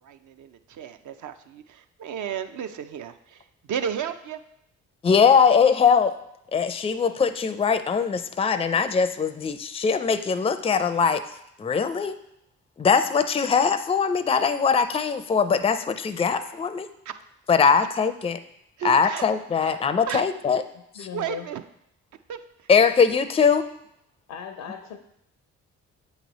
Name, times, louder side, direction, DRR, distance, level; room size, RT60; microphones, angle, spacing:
voice 1, 0.0-4.4 17.1-17.2 18.8-19.2 19.6-19.8 20.1-20.3 21.1-21.6 22.3-22.7, right 8 dB, 60° right, 9 dB, 0.6 m, -33 dB
voice 2, 5.0-6.1 6.5-11.2 11.6-12.2 12.8-16.9 17.5-18.4 18.8-20.6 21.0-21.1 22.7-23.7, left 6 dB, 15° left, 10 dB, 0.4 m, -21 dB
voice 3, 20.9-21.5 24.3-25.0, left 8 dB, 75° left, 6 dB, 0.6 m, -37 dB
7.7 x 3.1 x 4.1 m, 0.78 s
hypercardioid pair, 45°, 35 cm